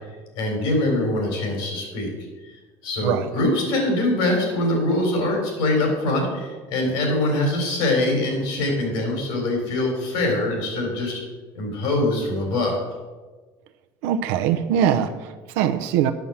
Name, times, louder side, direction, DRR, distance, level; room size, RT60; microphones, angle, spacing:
voice 1, 0.4-2.1 2.4-11.2 11.5-12.8, left 1 dB, 70° left, 1 dB, 4.1 m, -23 dB
voice 2, 14.0-16.1, right 9 dB, 85° right, 6 dB, 0.7 m, -22 dB
9.2 x 6.9 x 7.2 m, 1.3 s
cardioid pair, 145°, 9 cm